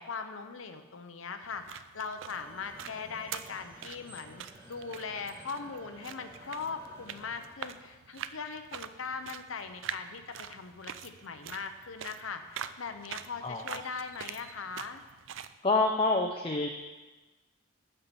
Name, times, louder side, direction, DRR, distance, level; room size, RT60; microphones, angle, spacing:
voice 1, 0.0-15.0, left 5 dB, 80° left, 7 dB, 0.8 m, -40 dB
sound 1, 1.4-15.6, right 8 dB, 70° right, 0.4 m, -45 dB
sound 2, 2.3-7.5, right 1 dB, 30° right, 2.3 m, -53 dB
voice 2, 13.4-13.8 15.6-16.7, left 3 dB, 25° left, 2 dB, 0.6 m, -27 dB
11.0 x 5.6 x 7.0 m, 1.2 s
head